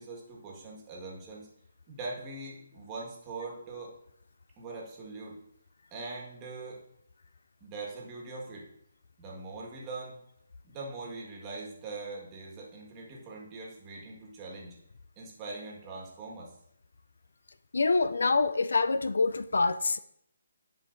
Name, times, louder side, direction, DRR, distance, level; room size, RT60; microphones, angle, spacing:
voice 1, 0.0-1.5 1.9-3.9 4.6-5.4 5.9-6.8 7.6-8.7 9.2-10.2 10.6-14.8 15.2-16.5, right 3 dB, 20° right, -2 dB, 1.6 m, -42 dB
voice 2, 17.7-20.0, left 3 dB, 75° left, 13 dB, 0.3 m, -26 dB
11.0 x 5.0 x 2.6 m, 0.73 s
figure-of-eight pair, 150°, 0 cm